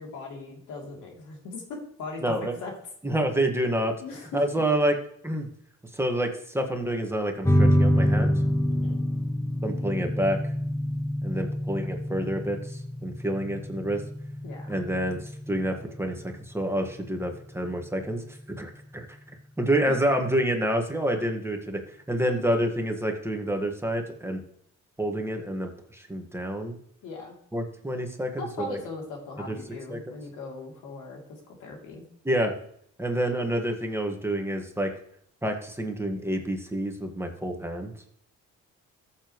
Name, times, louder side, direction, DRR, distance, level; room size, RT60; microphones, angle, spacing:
voice 1, 0.0-1.6 2.0-2.7 4.0-4.4 8.7-9.0 14.4-14.8 19.8-19.9 22.1-22.2 22.5-22.6 27.0-27.4 28.4-32.0, left 3 dB, 85° left, 0 dB, 3.2 m, -39 dB
voice 2, 2.2-2.5 3.0-3.9 4.3-5.0 5.2-5.5 5.9-8.3 9.6-10.4 11.2-14.0 14.7-19.2 19.6-21.8 22.1-24.4 25.0-26.8 27.5-28.8 29.5-29.6 29.9-30.2 32.3-32.5 33.0-34.9 35.4-37.9, right 1 dB, 10° right, 3 dB, 1.8 m, -28 dB
sound 1, 7.4-18.5, equal, 10° left, 0.9 m, -27 dB
14.5 x 7.3 x 3.2 m, 0.67 s
cardioid pair, 90°, 30 cm